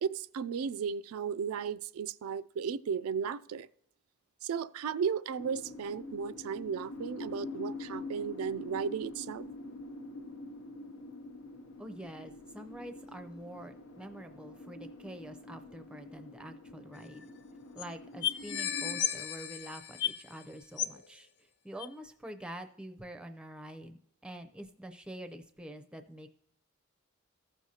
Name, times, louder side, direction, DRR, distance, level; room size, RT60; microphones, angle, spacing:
voice 1, 0.0-3.7 4.4-9.4, right 6 dB, 85° right, 0.3 m, -35 dB
sound 1, 5.4-19.0, left 2 dB, 85° left, 0.8 m, -45 dB
voice 2, 11.8-17.3 17.7-21.3 21.6-26.3, right 1 dB, 5° right, 0.5 m, -46 dB
sound 2, 16.9-17.0 17.2-17.3 17.8-17.9 18.2-20.4 20.8-21.1 21.8-21.9, left 10 dB, 55° left, 0.5 m, -34 dB
14.5 x 6.3 x 2.8 m
head